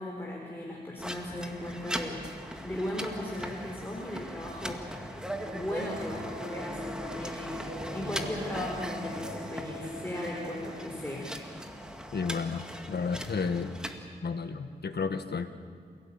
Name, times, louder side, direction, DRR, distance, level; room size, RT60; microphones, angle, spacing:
voice 1, 0.0-2.3 2.6-4.8 5.5-11.3, left 1 dB, 10° left, -2 dB, 4.3 m, -37 dB
sound 1, 1.0-14.0, equal, 5° right, 2.2 m, -39 dB
sound 2, 5.4-10.8, left 1 dB, 65° right, 5.0 m, -42 dB
voice 2, 12.1-13.7 14.2-15.5, left 5 dB, 70° left, 8 dB, 1.5 m, -32 dB
27.5 x 17.5 x 8.8 m, 2.3 s
wide cardioid pair, 70°, 17 cm